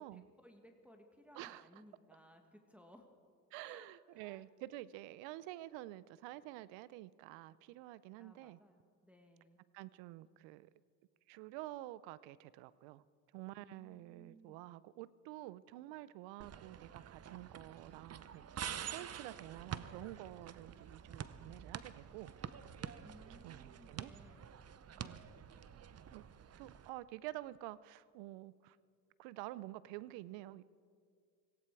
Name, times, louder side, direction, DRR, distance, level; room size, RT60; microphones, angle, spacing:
voice 1, 0.0-3.1 3.6-3.9 4.1-4.4 8.2-9.6 13.6-14.6 23.0-24.5 24.9-25.4, equal, 5° right, 3 dB, 1.8 m, -61 dB
voice 2, 1.3-1.7 3.5-8.6 9.7-10.7 11.3-13.0 13.3-22.3 23.3-24.1 25.0-25.3 26.1-26.2 26.6-28.8 29.2-30.6, right 16 dB, 75° right, 19 dB, 0.6 m, -49 dB
sound 1, 16.4-26.9, right 8 dB, 35° right, 0.7 m, -48 dB
18.0 x 16.5 x 4.7 m, 2.2 s
supercardioid pair, 65°, 44 cm